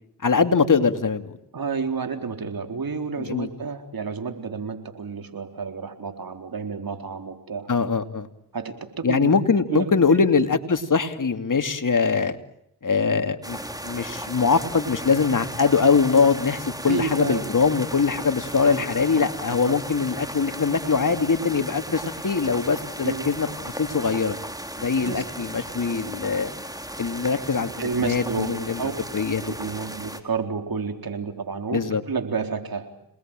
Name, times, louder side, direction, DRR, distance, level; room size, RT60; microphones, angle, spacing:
voice 1, 0.2-1.3 3.2-3.5 7.7-8.3 9.0-12.4 12.8-23.5 23.8-24.4 24.8-26.5 27.0-28.8 29.1-29.4 31.7-32.0, left 5 dB, 45° left, 8 dB, 2.6 m, -22 dB
voice 2, 1.5-7.7 8.5-9.4 9.7-9.9 16.9-17.6 18.6-18.8 19.6-19.7 23.0-23.2 25.0-25.2 27.8-28.9 29.5-31.8 32.1-32.9, right 5 dB, 55° right, 6 dB, 4.1 m, -30 dB
sound 1, 13.4-30.2, right 1 dB, 10° right, 3.7 m, -36 dB
28.5 x 20.5 x 9.1 m, 0.77 s
cardioid pair, 50°, 42 cm